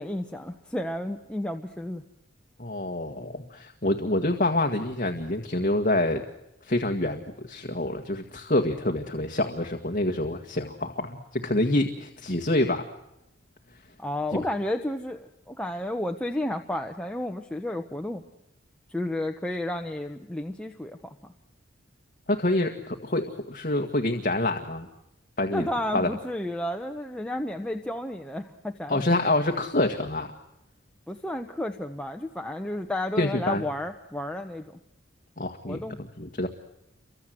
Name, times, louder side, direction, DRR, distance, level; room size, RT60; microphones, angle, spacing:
voice 1, 0.0-2.0 14.0-18.2 18.9-21.1 25.5-29.0 31.1-34.8 35.6-36.0, left 1 dB, 5° left, 3 dB, 1.1 m, -32 dB
voice 2, 2.6-6.2 6.6-12.8 14.3-14.4 22.3-24.9 25.4-26.1 28.9-30.3 33.2-33.6 35.4-35.8 36.2-36.5, left 1 dB, 40° left, 5 dB, 1.8 m, -26 dB
29.5 x 25.0 x 7.8 m, 0.89 s
head